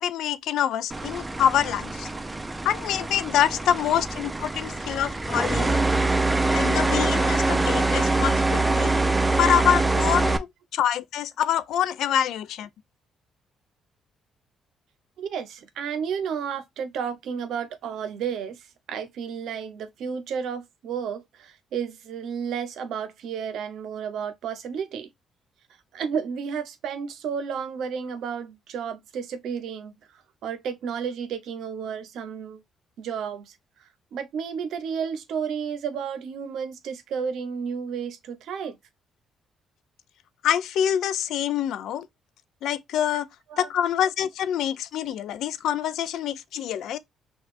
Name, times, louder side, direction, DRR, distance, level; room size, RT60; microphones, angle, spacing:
voice 1, 0.0-2.1 2.6-5.8 6.5-8.9 9.4-12.7 40.4-42.1 42.6-43.3 43.6-47.0, left 10 dB, 75° left, 0.4 m, -26 dB
sound 1, 0.9-10.4, right 2 dB, 15° right, 0.5 m, -24 dB
voice 2, 15.2-25.1 25.9-32.6 33.0-33.6 34.1-38.8 43.1-43.2 43.5-43.7, right 7 dB, 75° right, 0.7 m, -32 dB
5.9 x 2.3 x 2.5 m
supercardioid pair, 75°, 0 cm